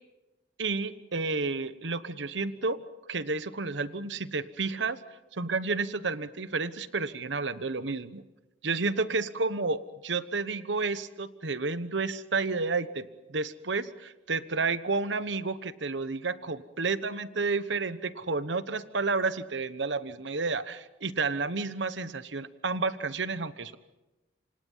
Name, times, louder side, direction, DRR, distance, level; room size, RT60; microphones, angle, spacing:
voice 1, 0.6-2.8 3.1-5.0 5.3-8.2 8.6-23.8, right 4 dB, 85° right, 13 dB, 1.2 m, -31 dB
28.5 x 26.0 x 5.6 m, 1.0 s
head